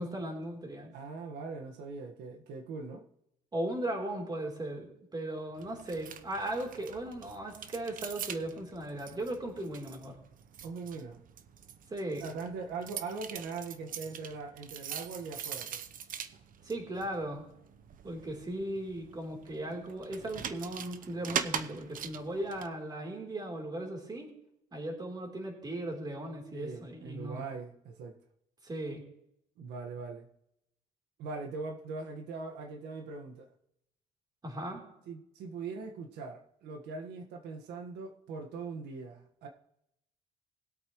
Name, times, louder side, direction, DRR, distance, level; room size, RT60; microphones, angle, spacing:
voice 1, 0.0-0.9 3.5-10.2 11.9-12.2 16.6-17.5 18.0-24.3 24.7-27.4 28.6-29.0 34.4-34.8, right 1 dB, 25° right, 1 dB, 3.6 m, -37 dB
voice 2, 0.9-3.0 10.6-11.2 12.2-15.8 26.5-28.2 29.6-30.3 31.2-33.5 35.1-39.5, right 4 dB, 80° right, 3 dB, 1.6 m, -41 dB
sound 1, 5.6-22.7, right 8 dB, 55° right, 0.9 m, -43 dB
20.5 x 8.3 x 3.1 m, 0.77 s
cardioid pair, 110°, 17 cm